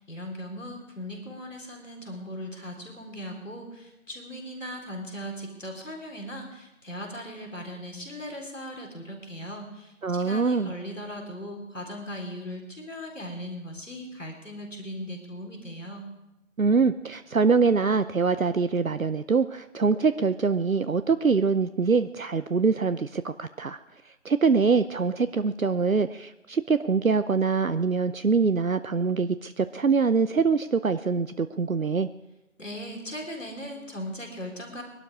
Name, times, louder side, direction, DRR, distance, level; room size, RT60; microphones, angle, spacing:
voice 1, 0.0-9.9 10.2-16.1 32.6-34.8, equal, 60° left, 2 dB, 3.9 m, -38 dB
voice 2, 10.0-10.7 16.6-23.8 24.2-32.1, right 5 dB, 70° right, 11 dB, 0.7 m, -24 dB
22.0 x 12.0 x 4.9 m, 0.93 s
figure-of-eight pair, 175°, 42 cm